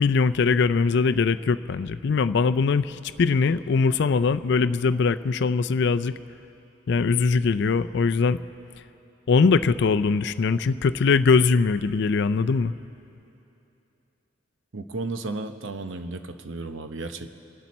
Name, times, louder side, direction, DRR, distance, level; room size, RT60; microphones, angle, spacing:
voice 1, 0.0-6.1 6.9-8.4 9.3-12.7, left 4 dB, 60° left, 14 dB, 0.4 m, -21 dB
voice 2, 14.7-17.3, right 3 dB, 80° right, 8 dB, 0.9 m, -33 dB
28.0 x 12.0 x 4.2 m, 2.9 s
head